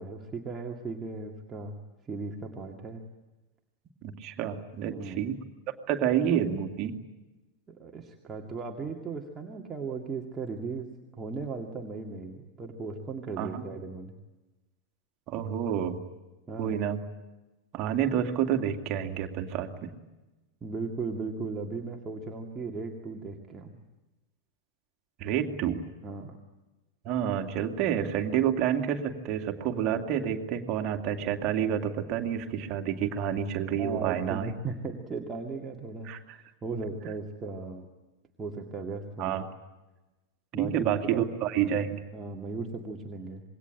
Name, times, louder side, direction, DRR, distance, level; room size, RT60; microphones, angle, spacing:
voice 1, 0.0-1.8 2.1-3.0 4.9-5.3 7.7-10.9 11.1-14.1 16.5-16.8 20.6-23.7 26.0-26.4 33.8-36.1 36.6-37.9 38.4-39.4 40.5-40.7 41.0-41.7 42.1-43.4, right 4 dB, 20° right, 1 dB, 2.2 m, -37 dB
voice 2, 4.0-5.4 5.9-6.9 13.4-13.6 15.3-16.0 16.6-17.0 17.7-19.9 25.2-25.8 27.0-34.5 36.0-36.4 39.2-39.4 40.6-42.0, right 9 dB, 40° right, 6 dB, 2.4 m, -29 dB
26.5 x 22.0 x 9.0 m, 1.1 s
figure-of-eight pair, 90°, 0 cm